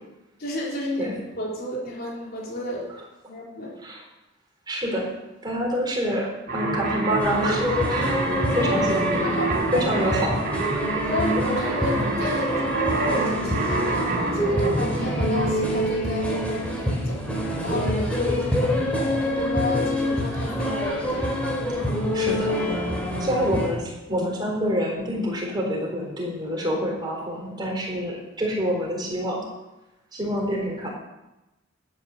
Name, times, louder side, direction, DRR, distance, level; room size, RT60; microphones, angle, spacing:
voice 1, 0.4-2.9 3.3-3.7 8.5-8.8 9.2-9.9 10.8-17.2 17.6-21.2, left 1 dB, 50° left, -3 dB, 3.8 m, -32 dB
voice 2, 4.7-5.1 5.4-8.1 8.5-9.3 9.7-10.4 22.1-22.5 23.2-29.4 30.1-30.9, equal, 20° right, -2 dB, 4.1 m, -27 dB
sound 1, 6.5-16.6, right 2 dB, 45° right, 3.4 m, -27 dB
sound 2, 7.2-23.7, equal, 5° left, 3.3 m, -26 dB
13.0 x 9.6 x 6.6 m, 0.97 s
head